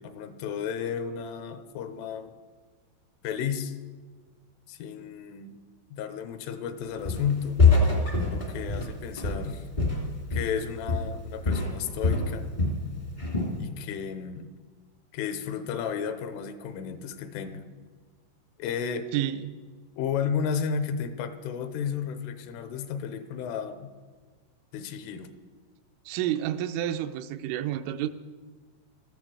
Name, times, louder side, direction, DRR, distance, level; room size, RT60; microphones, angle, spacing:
voice 1, 0.0-2.3 3.2-3.8 4.7-5.5 5.9-7.6 8.3-9.7 10.3-12.5 13.5-14.5 15.1-17.6 18.6-19.1 20.0-23.9 24.7-25.3, left 7 dB, 80° left, 9 dB, 3.3 m, -33 dB
Walk footsteps, 7.0-7.3 7.6-10.6 10.9-11.2 11.4-12.8 13.2-13.6, left 3 dB, 40° left, 0.6 m, -24 dB
voice 2, 19.1-19.6 26.1-28.1, right 11 dB, 85° right, 9 dB, 3.1 m, -30 dB
13.5 x 11.5 x 7.7 m, 1.4 s
omnidirectional pair, 5.7 m